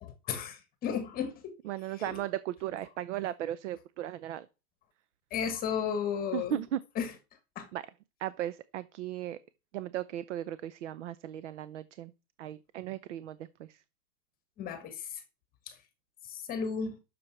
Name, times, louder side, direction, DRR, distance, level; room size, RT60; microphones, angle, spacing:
voice 1, 0.0-1.5 1.9-2.2 5.3-6.6 7.0-7.1 7.5-7.7 14.6-15.2 15.7-15.8 16.3-17.0, left 7 dB, 20° left, 1.2 m, -34 dB
voice 2, 1.6-4.5 6.3-6.8 7.7-7.9 8.2-9.4 9.7-12.1 12.4-13.8, right 12 dB, 45° right, 0.7 m, -36 dB
13.0 x 6.9 x 5.9 m
supercardioid pair, 160°, 49 cm